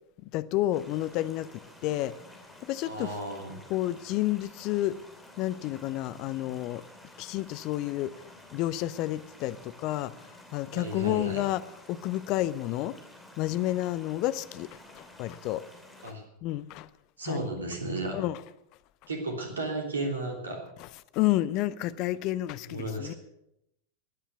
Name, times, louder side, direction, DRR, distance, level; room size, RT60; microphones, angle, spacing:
voice 1, 0.2-1.5 1.8-2.1 2.6-3.1 3.7-5.0 5.4-6.8 7.2-11.6 11.9-13.0 13.4-15.7 16.0-16.1 16.4-16.9 17.3-17.5 18.1-18.4 20.8-20.9 21.1-23.1, left 15 dB, 40° left, 0.6 m, -30 dB
sound 1, 0.7-16.1, left 1 dB, 5° left, 2.8 m, -52 dB
voice 2, 2.8-3.5 10.7-11.4 16.0-16.2 17.2-18.2 19.1-20.6 22.7-23.1, right 2 dB, 70° right, 3.4 m, -33 dB
15.5 x 10.0 x 6.6 m
figure-of-eight pair, 90°, 0 cm